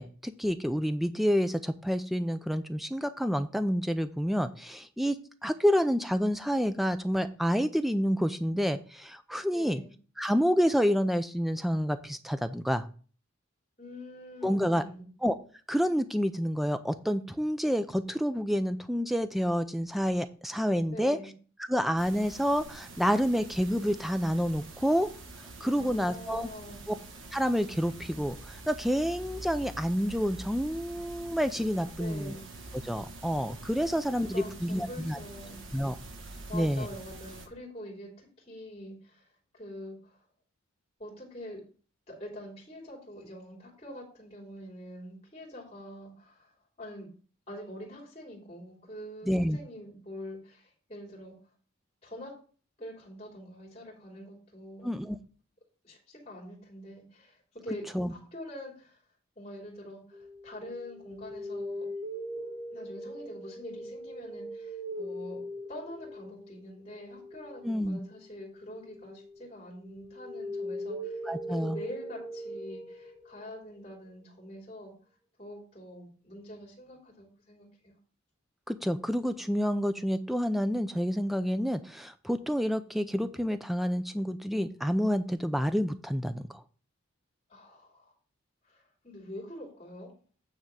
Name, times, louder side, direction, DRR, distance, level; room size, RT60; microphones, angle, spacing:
voice 1, 0.0-5.2 5.4-9.8 10.2-12.8 14.4-14.8 15.2-15.3 15.7-21.2 21.7-25.1 25.6-26.5 26.9-27.0 27.3-32.4 32.8-35.2 35.7-36.0 36.5-36.9 49.3-49.6 54.8-55.2 57.9-58.1 67.6-68.0 71.3-71.8 78.7-86.6, equal, ahead, 10 dB, 0.5 m, -28 dB
voice 2, 9.5-9.9 13.8-15.1 20.9-21.3 25.6-26.8 32.0-32.5 33.8-33.9 34.3-35.6 36.5-40.2 41.0-41.6 42.1-47.1 47.5-51.3 52.0-52.3 52.8-55.0 55.8-57.8 58.1-59.0 59.3-61.9 62.7-65.4 65.7-71.2 71.5-74.9 75.4-77.9 87.5-88.1 88.6-90.1, left 1 dB, 30° left, -1 dB, 3.1 m, -45 dB
sound 1, 22.0-37.5, right 2 dB, 60° right, 1.3 m, -46 dB
sound 2, 60.1-69.5 69.8-73.6, equal, 20° right, 1.0 m, -41 dB
9.0 x 3.6 x 6.8 m, 0.40 s
head